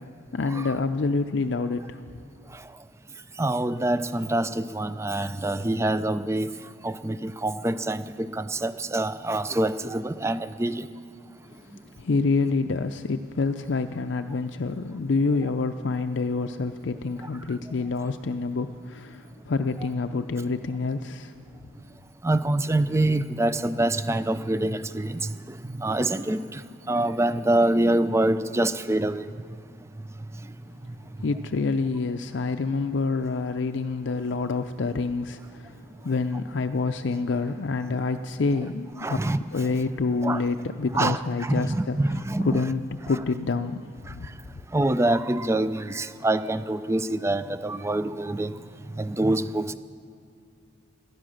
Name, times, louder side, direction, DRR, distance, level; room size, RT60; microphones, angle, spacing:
voice 1, 0.0-2.2 12.0-21.3 31.2-44.3, left 4 dB, 65° left, 7 dB, 0.5 m, -27 dB
voice 2, 3.4-6.5 6.8-10.9 22.2-29.2 30.9-31.0 37.9-38.0 39.0-39.7 40.2-40.4 40.9-42.7 44.7-48.6 49.0-49.7, right 1 dB, 15° right, 12 dB, 0.4 m, -26 dB
18.0 x 12.0 x 6.4 m, 2.5 s
head